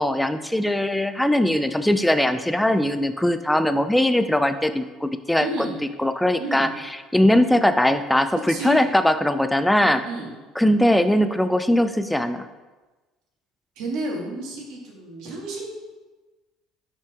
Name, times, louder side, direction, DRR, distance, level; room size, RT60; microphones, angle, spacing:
voice 1, 0.0-5.5 6.0-6.7 7.1-10.0 10.6-12.5, left 1 dB, 5° left, 10 dB, 0.4 m, -20 dB
voice 2, 5.4-5.8 6.4-6.7 8.5-8.9 9.8-10.3 13.8-15.7, right 2 dB, 75° right, -1 dB, 1.6 m, -31 dB
5.4 x 5.2 x 3.6 m, 1.2 s
supercardioid pair, 100°, 0 cm